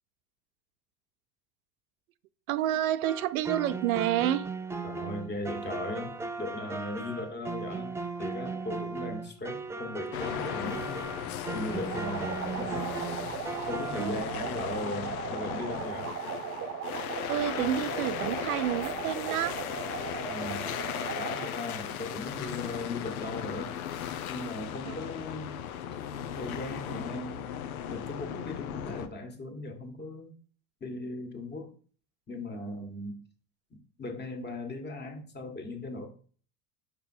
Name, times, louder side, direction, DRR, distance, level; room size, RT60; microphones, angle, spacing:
voice 1, 2.5-4.5 14.0-14.2 17.3-19.6 24.9-25.1, right 12 dB, 85° right, 0.5 m, -29 dB
sound 1, 3.0-14.1, right 3 dB, 10° right, 0.3 m, -37 dB
voice 2, 4.8-11.2 11.5-13.1 13.7-16.1 20.3-20.7 21.2-23.8 24.3-25.6 26.4-27.5 27.9-30.3 30.8-31.7 32.3-33.2 33.7-36.1, left 1 dB, 25° left, 1.6 m, -38 dB
sound 2, 10.1-29.1, left 9 dB, 90° left, 0.7 m, -37 dB
sound 3, 11.7-21.7, right 8 dB, 35° right, 0.8 m, -38 dB
5.4 x 4.4 x 4.3 m
hypercardioid pair, 90°, 42 cm